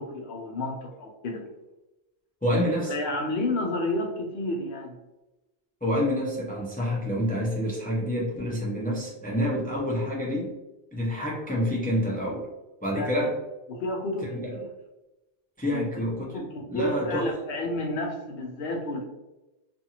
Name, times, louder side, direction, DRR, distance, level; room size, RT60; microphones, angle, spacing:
voice 1, 0.0-1.5 2.8-5.0 12.9-13.3 13.7-14.7 15.7-15.9 16.3-19.0, left 2 dB, 65° left, 1 dB, 0.8 m, -31 dB
voice 2, 2.4-2.9 5.8-10.5 10.9-12.5 12.8-13.4 14.3-14.6 15.6-17.3, equal, 15° left, -4 dB, 0.3 m, -28 dB
2.6 x 2.5 x 2.8 m, 1.0 s
omnidirectional pair, 1.2 m